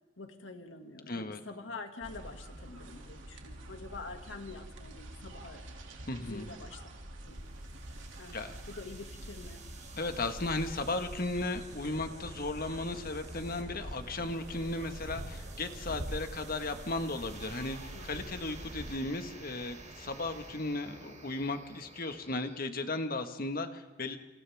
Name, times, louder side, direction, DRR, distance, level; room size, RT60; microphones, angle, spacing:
voice 1, 0.2-5.6 6.2-6.8 7.3-7.4 8.2-9.6 17.9-18.3, left 3 dB, 80° left, 4 dB, 2.3 m, -46 dB
voice 2, 1.1-1.4 6.0-6.5 8.3-8.5 10.0-24.2, left 2 dB, 50° left, 6 dB, 1.6 m, -36 dB
sound 1, 2.0-19.0, right 1 dB, 85° right, 2.7 m, -45 dB
sound 2, 7.2-22.6, right 2 dB, 40° right, 4.2 m, -51 dB
28.5 x 26.5 x 3.6 m, 1.1 s
head